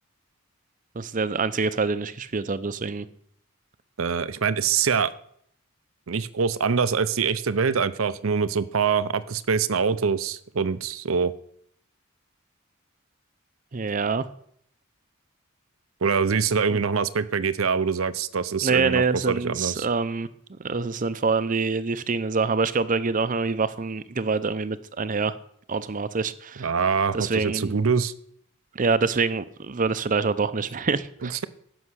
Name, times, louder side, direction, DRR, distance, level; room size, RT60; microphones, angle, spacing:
voice 1, 0.9-3.1 13.7-14.3 18.6-25.4 25.7-26.7 27.1-27.8 28.7-31.4, right 4 dB, 40° right, 14 dB, 0.6 m, -26 dB
voice 2, 4.0-5.1 6.1-11.3 16.0-19.9 26.6-28.1 31.2-31.5, right 5 dB, 75° right, 15 dB, 0.7 m, -24 dB
15.5 x 6.3 x 6.3 m, 0.68 s
head